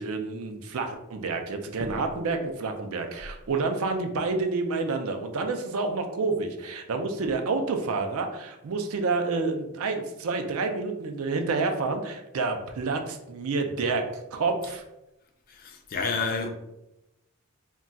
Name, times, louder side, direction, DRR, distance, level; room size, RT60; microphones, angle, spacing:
voice 1, 0.0-14.8, right 3 dB, 75° right, 0.4 m, -29 dB
voice 2, 15.5-16.5, left 4 dB, 40° left, 0.3 m, -30 dB
2.3 x 2.2 x 3.8 m
head